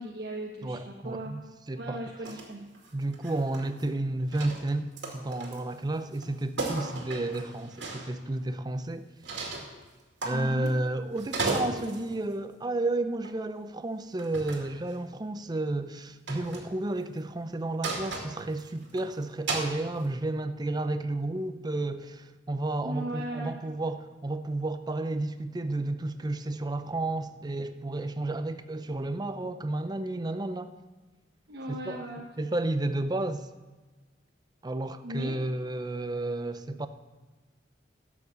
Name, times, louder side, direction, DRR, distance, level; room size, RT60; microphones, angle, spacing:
voice 1, 0.0-1.3 1.8-2.7 10.3-10.7 22.8-23.5 31.5-32.2 35.0-35.4, right 1 dB, 60° right, 1.1 m, -37 dB
voice 2, 0.6-2.1 2.9-9.1 10.2-30.7 31.7-32.0 32.4-33.5 34.6-36.9, right 2 dB, 25° right, 0.5 m, -32 dB
sound 1, 2.2-2.5 2.7-3.9 4.3-5.7 6.1-6.3 6.6-8.1 9.2-9.7 10.2-10.9 11.2-12.1 13.2-13.4 14.2-14.7 16.3-16.7 17.8-19.0 19.5-19.7, right 3 dB, 85° right, 2.3 m, -35 dB
11.5 x 7.3 x 6.5 m
head